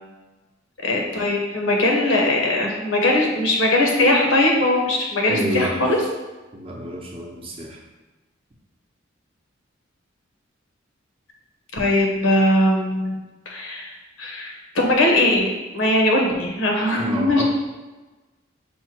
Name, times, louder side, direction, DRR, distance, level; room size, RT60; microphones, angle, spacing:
voice 1, 0.8-6.0 11.7-13.1 13.5-13.9 14.2-17.4, left 1 dB, 80° left, 0 dB, 1.0 m, -20 dB
voice 2, 5.3-5.7 6.5-7.8 17.0-17.4, equal, 30° right, -1 dB, 0.7 m, -28 dB
5.5 x 2.2 x 4.4 m, 1.2 s
head